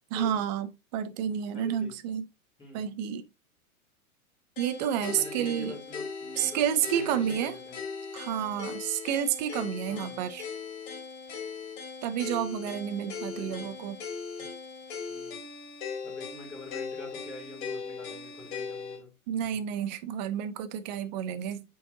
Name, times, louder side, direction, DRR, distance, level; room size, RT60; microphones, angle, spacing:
voice 1, 0.1-2.2 2.7-3.2 4.6-5.7 6.4-7.5 8.1-10.4 12.0-14.0 19.3-21.6, right 9 dB, 30° right, 0.6 m, -30 dB
voice 2, 1.5-2.0 2.6-2.9 5.0-7.8 9.9-10.2 13.2-13.7 15.1-15.4 16.0-19.1 19.5-19.6, left 2 dB, 10° left, 3.1 m, -45 dB
sound 1, 4.6-19.0, left 5 dB, 60° left, 2.8 m, -39 dB
8.0 x 4.7 x 2.7 m
hypercardioid pair, 155°, 44 cm